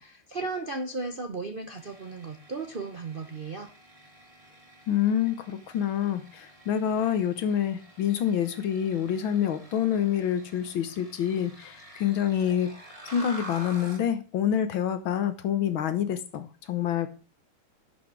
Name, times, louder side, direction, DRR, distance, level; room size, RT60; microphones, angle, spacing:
voice 1, 0.0-3.7, right 3 dB, 45° right, 5 dB, 0.6 m, -35 dB
sound 1, 1.8-14.1, right 1 dB, 15° right, 2.3 m, -48 dB
voice 2, 4.9-12.7 13.1-17.1, left 9 dB, 75° left, 10 dB, 1.9 m, -27 dB
11.5 x 5.9 x 6.1 m, 0.35 s
omnidirectional pair, 2.3 m